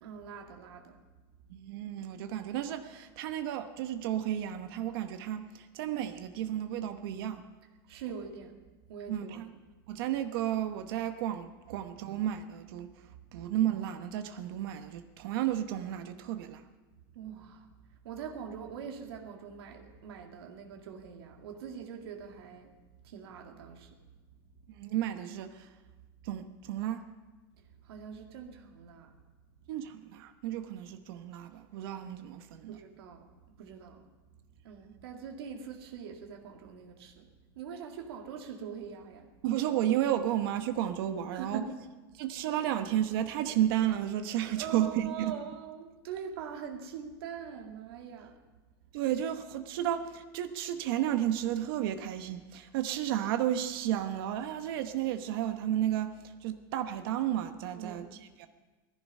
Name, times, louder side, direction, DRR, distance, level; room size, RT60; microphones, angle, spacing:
voice 1, 0.0-1.0 7.9-8.5 8.9-9.4 13.3-13.4 17.1-17.7 18.0-22.8 23.0-24.0 27.6-29.1 32.7-34.0 34.6-37.3 37.6-39.3 41.3-41.7 44.5-48.4 57.7-58.2, right 7 dB, 85° right, 2.1 m, -43 dB
voice 2, 1.5-7.4 9.1-9.5 9.9-12.9 13.3-16.6 24.7-25.7 26.2-27.0 29.7-32.8 39.4-41.6 42.1-45.4 48.9-58.1 58.4-58.5, right 11 dB, 65° right, 1.0 m, -32 dB
17.0 x 14.5 x 5.4 m
supercardioid pair, 140°, 13 cm